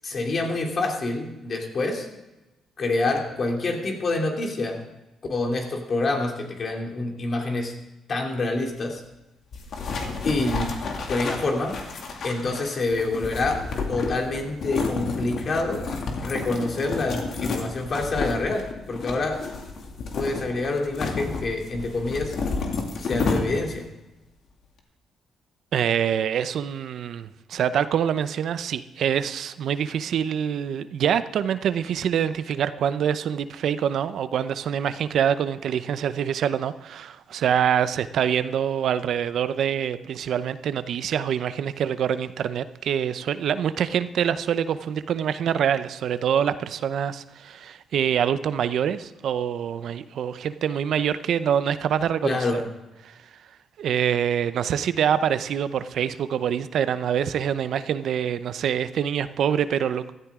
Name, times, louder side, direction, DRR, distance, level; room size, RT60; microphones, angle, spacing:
voice 1, 0.0-2.1 2.8-4.9 5.3-7.7 8.1-9.0 10.2-10.7 11.1-11.8 12.2-13.6 13.9-15.9 16.2-19.4 20.1-22.3 23.0-23.9 52.2-52.6, left 2 dB, 45° left, 2.9 m, -27 dB
sound 1, 9.5-23.9, left 4 dB, 60° left, 2.3 m, -31 dB
voice 2, 25.7-52.5 53.0-53.2 53.8-60.1, right 8 dB, 70° right, 0.6 m, -25 dB
16.0 x 13.5 x 3.7 m
cardioid pair, 90°, 0 cm